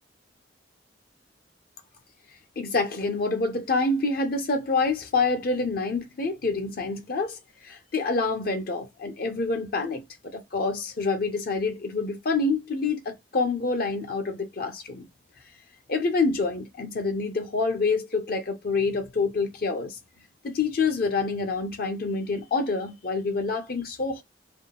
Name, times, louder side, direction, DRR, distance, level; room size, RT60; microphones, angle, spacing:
voice 1, 2.6-15.1 15.9-20.0 20.4-24.2, left 3 dB, 55° left, 0.6 m, -27 dB
3.7 x 2.3 x 3.5 m
head